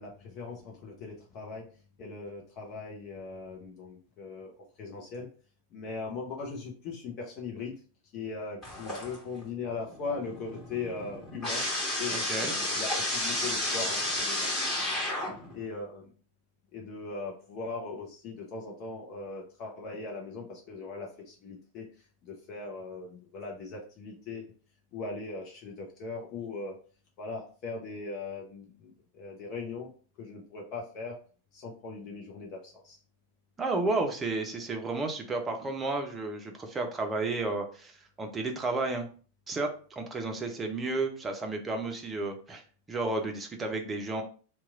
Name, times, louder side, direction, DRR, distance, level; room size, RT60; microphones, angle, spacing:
voice 1, 0.0-1.7 2.0-4.5 4.8-5.3 5.7-7.7 8.1-11.6 12.0-14.5 15.5-16.1 16.7-21.9 22.2-24.5 24.9-26.7 27.2-29.9 30.2-31.1 31.5-33.0, left 4 dB, 40° left, -1 dB, 0.7 m, -39 dB
sound 1, 8.6-9.4 9.8-15.6, left 1 dB, 20° left, 1.8 m, -32 dB
voice 2, 12.1-12.5 33.6-37.9 38.2-39.1 39.5-44.2, right 3 dB, 20° right, 3 dB, 0.6 m, -32 dB
3.0 x 2.3 x 3.6 m, 0.40 s
figure-of-eight pair, 90°, 0 cm